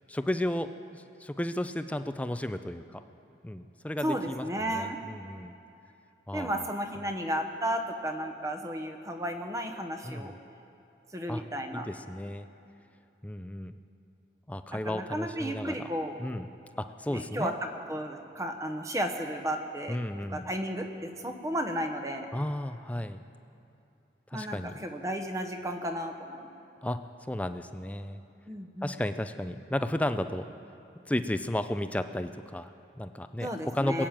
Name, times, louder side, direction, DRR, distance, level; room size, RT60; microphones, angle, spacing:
voice 1, 0.1-3.0 3.4-5.5 6.3-6.7 10.0-10.4 11.3-11.4 11.7-12.5 13.2-13.8 14.5-15.8 16.2-16.5 16.8-17.5 19.9-20.5 22.3-23.2 24.3-24.8 26.8-27.0 27.3-28.2 28.8-30.5 31.1-34.1, left 1 dB, 10° left, 10 dB, 0.4 m, -33 dB
voice 2, 4.0-5.0 6.3-10.3 11.1-11.9 14.7-16.2 17.1-17.5 17.9-20.0 20.3-22.3 24.3-26.5 28.5-28.9 33.4-34.1, equal, 20° right, 5 dB, 0.9 m, -33 dB
21.0 x 8.9 x 7.5 m, 2.7 s
head